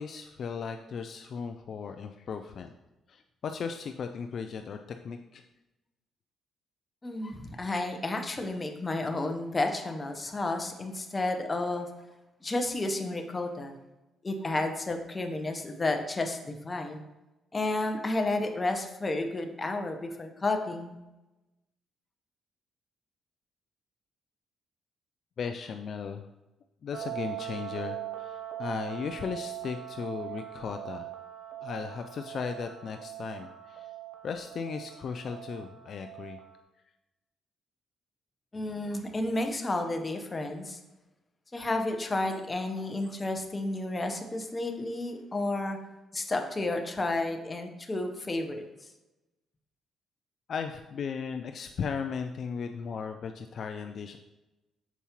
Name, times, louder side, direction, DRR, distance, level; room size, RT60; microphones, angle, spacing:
voice 1, 0.0-2.7 3.1-5.4 25.4-26.3 26.8-31.1 31.6-33.9 34.2-36.4 50.5-54.2, left 6 dB, 55° left, 6 dB, 0.3 m, -36 dB
voice 2, 7.0-11.9 12.4-13.8 14.2-17.0 17.5-21.0 38.5-40.8 41.5-45.8 46.1-48.6, left 2 dB, 25° left, 5 dB, 0.8 m, -31 dB
sound 1, 26.9-36.6, right 13 dB, 65° right, 0.8 m, -41 dB
7.0 x 4.6 x 2.9 m, 1.0 s
cardioid pair, 90°, 0 cm